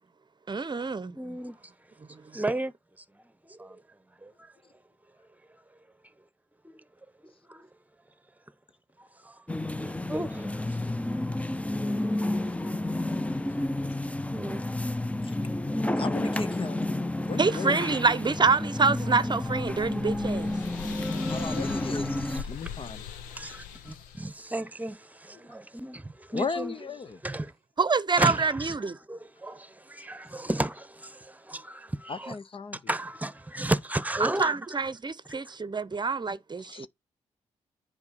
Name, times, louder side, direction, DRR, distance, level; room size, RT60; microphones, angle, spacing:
voice 1, 0.5-1.1 17.4-20.5 27.8-29.0 34.2-36.9, right 4 dB, 35° right, 0.8 m, -26 dB
voice 2, 1.1-1.6 2.3-2.7 3.1-3.8 4.2-4.5 6.7-6.8 7.5-7.7 9.0-9.4 9.8-10.8 12.4-13.2 14.3-14.6 21.0-22.5 23.3-26.7 27.2-27.5 28.2-32.4 32.7-34.7 35.4-35.6, right 1 dB, 10° right, 1.1 m, -34 dB
sound 1, 9.5-22.4, left 1 dB, 10° left, 0.7 m, -30 dB
voice 3, 15.9-16.9 17.2-17.8 21.3-23.0 26.3-27.2 32.1-32.8 36.6-36.9, left 4 dB, 40° left, 0.7 m, -35 dB
sound 2, 19.0-24.3, left 8 dB, 90° left, 0.9 m, -42 dB
9.7 x 4.7 x 4.2 m
hypercardioid pair, 45°, 14 cm